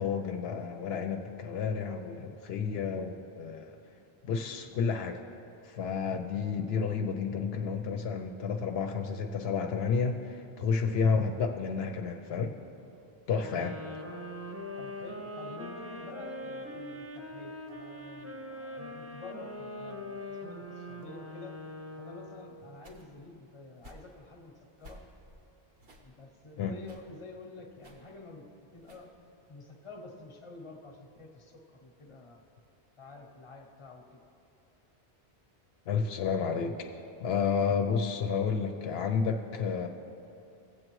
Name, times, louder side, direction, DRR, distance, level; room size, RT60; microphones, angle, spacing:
voice 1, 0.0-3.8 4.2-5.2 5.6-12.5 13.3-13.8 26.6-26.7 35.9-36.9 37.2-39.9, left 5 dB, 75° left, 4 dB, 0.8 m, -31 dB
sound 1, 13.4-22.6, left 1 dB, 15° right, 0.8 m, -42 dB
voice 2, 14.8-21.5 22.0-24.5 24.8-25.0 26.0-29.1 29.5-32.4 33.0-34.2, left 3 dB, 30° left, 2 dB, 0.9 m, -49 dB
sound 2, 22.8-23.3 23.8-24.2 24.8-25.4 25.7-26.1 26.8-27.1 27.8-28.1 28.8-29.1, equal, 65° right, 1.2 m, -54 dB
16.0 x 7.7 x 3.1 m, 2.7 s
omnidirectional pair, 1.1 m